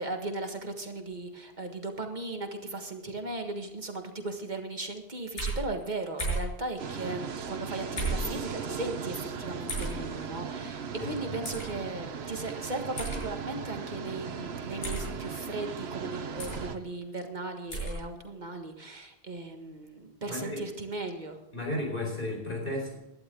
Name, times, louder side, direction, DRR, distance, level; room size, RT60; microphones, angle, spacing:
voice 1, 0.0-21.4, right 2 dB, 45° right, 4 dB, 1.8 m, -37 dB
sound 1, 5.4-5.6 6.2-6.5 8.0-8.3 9.7-9.9 11.4-11.7 13.0-13.2 14.8-15.1 16.4-16.6 17.7-18.0, right 2 dB, 75° left, 6.9 m, -32 dB
sound 2, 6.8-16.8, right 6 dB, 80° right, 1.2 m, -38 dB
voice 2, 11.0-11.3 20.3-20.6 21.5-23.0, left 1 dB, 55° left, 0 dB, 4.8 m, -34 dB
17.5 x 11.5 x 3.8 m, 0.95 s
omnidirectional pair, 1.1 m